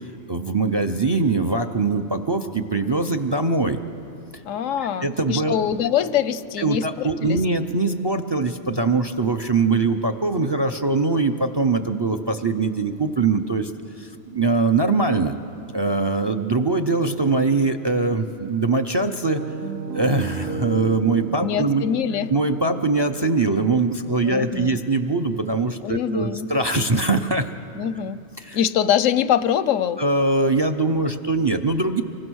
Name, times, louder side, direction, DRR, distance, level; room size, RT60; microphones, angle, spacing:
voice 1, 0.3-3.8 5.0-5.5 6.6-13.7 14.0-15.4 15.7-19.4 19.9-21.9 22.3-27.5 28.4-28.6 30.0-32.0, right 3 dB, 30° right, 9 dB, 0.5 m, -22 dB
voice 2, 4.4-7.4 21.4-22.3 24.2-24.8 25.8-26.5 27.7-28.2 28.5-30.0, left 9 dB, 90° left, 15 dB, 1.1 m, -23 dB
Piano, 19.4-27.2, right 5 dB, 60° right, 1.0 m, -35 dB
25.0 x 23.0 x 6.3 m, 2.7 s
omnidirectional pair, 1.3 m